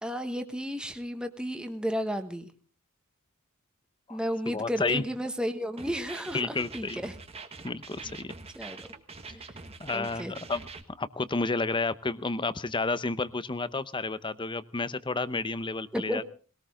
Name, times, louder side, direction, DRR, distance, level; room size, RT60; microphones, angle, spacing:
voice 1, 0.0-2.5 4.1-7.1 8.5-8.9 9.3-9.5 9.9-10.3 15.9-16.2, equal, 5° right, 7 dB, 1.3 m, -33 dB
voice 2, 4.5-5.1 6.3-7.1 7.6-8.3 9.3-9.4 9.8-10.6 11.0-16.2, left 3 dB, 20° left, 15 dB, 0.8 m, -31 dB
sound 1, 5.8-10.8, right 4 dB, 30° right, 1.5 m, -44 dB
20.5 x 18.5 x 3.7 m, 0.39 s
head